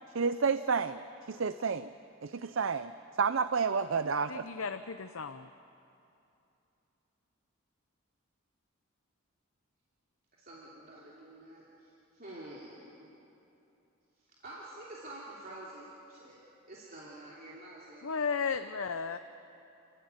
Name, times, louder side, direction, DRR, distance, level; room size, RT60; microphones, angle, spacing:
voice 1, 0.1-1.0 1.3-1.9 2.2-2.9 3.2-4.4, right 5 dB, 65° right, 12 dB, 0.5 m, -30 dB
voice 2, 4.3-5.5 18.0-19.2, left 5 dB, 75° left, 9 dB, 0.7 m, -34 dB
voice 3, 10.4-13.0 14.4-16.4 16.7-18.1, right 1 dB, 45° right, -6 dB, 3.1 m, -48 dB
29.5 x 15.0 x 9.5 m, 2.8 s
head